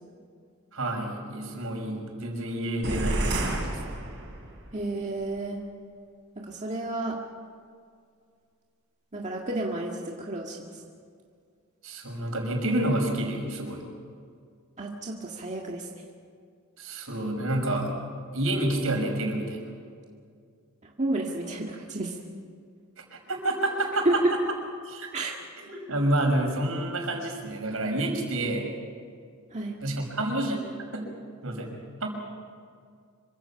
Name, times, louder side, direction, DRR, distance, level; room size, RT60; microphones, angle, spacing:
voice 1, 0.7-3.8 11.8-13.8 16.8-18.0 18.3-19.6 23.0-24.2 24.8-25.1 25.6-28.7 29.8-30.6 30.9-31.1 31.4-31.7 32.0-32.1, right 1 dB, 75° right, 2 dB, 5.5 m, -29 dB
sound 1, 2.8-4.7, right 1 dB, 55° right, 5.7 m, -29 dB
voice 2, 4.7-5.6 6.4-7.2 9.1-10.8 14.8-15.9 21.0-22.2 24.1-24.3 25.1-25.3 29.5-29.8, right 2 dB, 35° right, -1 dB, 1.9 m, -30 dB
26.5 x 24.5 x 5.9 m, 2.2 s
head